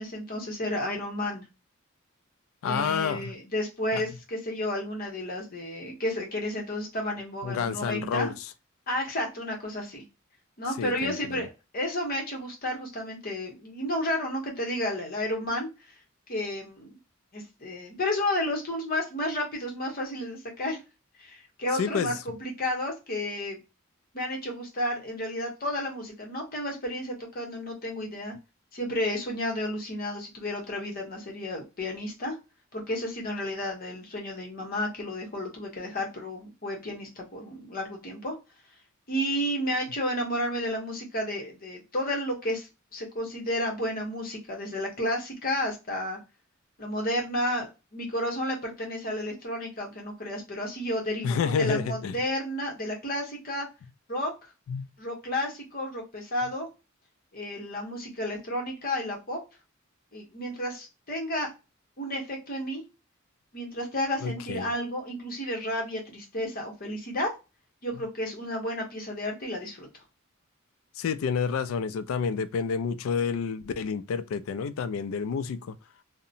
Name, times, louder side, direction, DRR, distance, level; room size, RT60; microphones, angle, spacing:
voice 1, 0.0-1.4 2.6-8.3 8.9-10.0 10.6-15.7 16.3-17.0 17.3-20.8 21.2-23.6 24.1-28.3 28.7-32.4 32.7-38.3 39.1-42.7 42.9-46.2 46.8-53.7 54.1-54.3 55.0-56.7 57.3-59.4 60.1-61.5 62.0-62.8 63.5-67.3 67.8-69.9, left 1 dB, 45° left, 0.9 m, -32 dB
voice 2, 2.6-3.3 3.9-4.0 7.4-8.5 10.8-11.5 21.7-22.1 51.2-52.2 54.7-54.9 64.2-64.7 71.0-75.8, left 6 dB, 75° left, 0.3 m, -29 dB
2.7 x 2.1 x 2.5 m
head